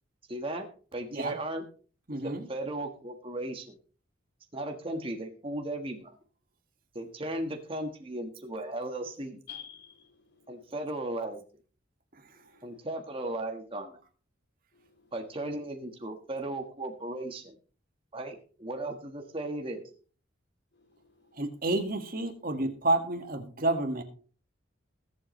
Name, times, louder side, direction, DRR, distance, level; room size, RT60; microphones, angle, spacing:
voice 1, 0.3-0.7 0.9-1.6 2.2-3.8 4.5-6.2 6.9-9.4 10.5-11.4 12.6-14.0 15.1-17.6 18.1-19.9, right 1 dB, 25° right, 1.5 m, -36 dB
voice 2, 2.1-2.5 21.4-24.0, right 2 dB, 45° right, 1.8 m, -29 dB
voice 3, 9.5-10.5 12.4-12.8 15.0-15.1 21.0-21.4, left 9 dB, 55° left, 3.1 m, -49 dB
21.5 x 8.0 x 3.2 m
head